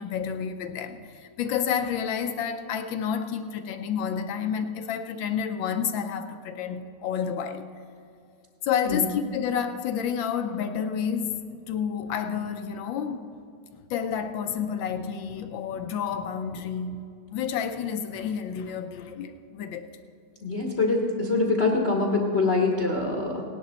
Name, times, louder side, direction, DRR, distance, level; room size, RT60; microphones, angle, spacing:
voice 1, 0.0-7.7 8.6-11.4 11.7-13.3 13.9-19.9, left 7 dB, 70° left, 1.3 m, -30 dB
voice 2, 20.4-23.4, left 3 dB, 40° left, 1.0 m, -24 dB
17.5 x 11.0 x 4.0 m
omnidirectional pair, 2.3 m